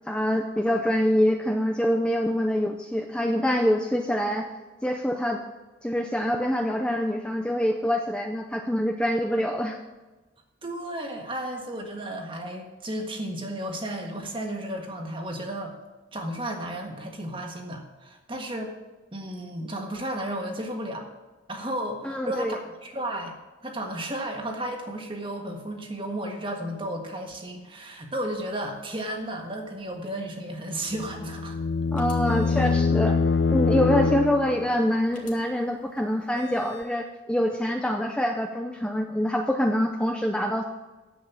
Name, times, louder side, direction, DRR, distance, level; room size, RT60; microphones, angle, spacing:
voice 1, 0.1-4.5 4.8-5.4 5.8-9.8 22.0-22.6 31.9-33.2 33.5-40.6, equal, 5° left, 3 dB, 0.5 m, -25 dB
voice 2, 10.6-15.7 16.1-18.7 19.1-21.1 21.5-23.3 23.6-31.6, right 1 dB, 25° right, 3 dB, 1.6 m, -33 dB
sound 1, 30.9-34.8, left 4 dB, 60° left, 0.4 m, -24 dB
sound 2, 32.0-32.8 35.1-35.3 36.3-37.0, equal, 45° left, 1.9 m, -44 dB
10.5 x 8.0 x 7.1 m, 1.2 s
head